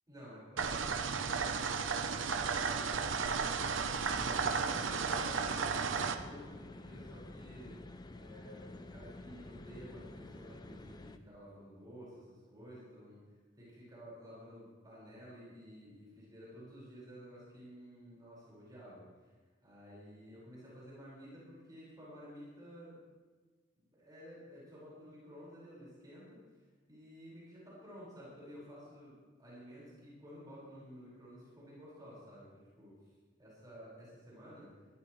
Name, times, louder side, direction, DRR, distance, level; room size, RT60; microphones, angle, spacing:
voice 1, 0.1-3.0 3.4-7.8 8.1-13.2 13.6-19.3 19.6-23.0 23.8-26.4 26.9-32.9 33.4-34.7, equal, 20° right, -8 dB, 5.3 m, -52 dB
sound 1, 0.6-6.1, right 5 dB, 80° right, 0.8 m, -34 dB
sound 2, 4.0-11.2, left 2 dB, 20° left, 0.4 m, -50 dB
20.5 x 13.0 x 3.2 m, 1.4 s
head